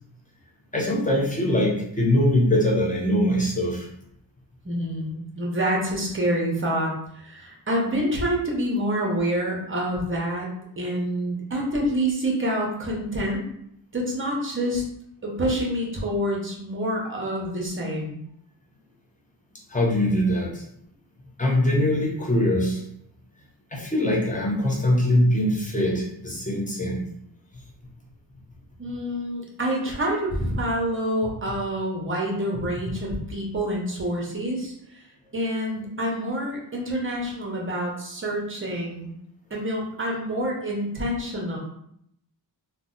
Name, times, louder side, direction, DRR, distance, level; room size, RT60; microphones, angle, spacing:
voice 1, 0.7-3.9 19.7-20.6 21.4-22.8 23.7-27.1 32.5-32.7, left 1 dB, 20° left, -2 dB, 0.6 m, -22 dB
voice 2, 4.6-10.5 10.8-13.4 13.9-14.8 15.2-18.2 28.8-35.1 35.3-39.1 39.5-41.6, equal, 30° right, -2 dB, 0.7 m, -27 dB
2.7 x 2.1 x 3.7 m, 0.72 s
wide cardioid pair, 150°, 45 cm